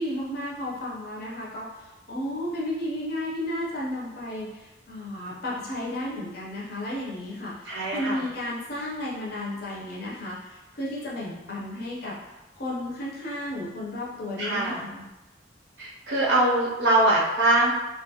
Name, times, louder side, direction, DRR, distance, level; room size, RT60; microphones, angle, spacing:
voice 1, 0.0-12.1 12.6-15.0, left 1 dB, 55° left, -5 dB, 0.5 m, -33 dB
voice 2, 7.7-8.2 14.4-14.8 15.8-17.7, right 1 dB, 65° right, -5 dB, 0.5 m, -22 dB
2.5 x 2.2 x 2.7 m, 1.0 s
head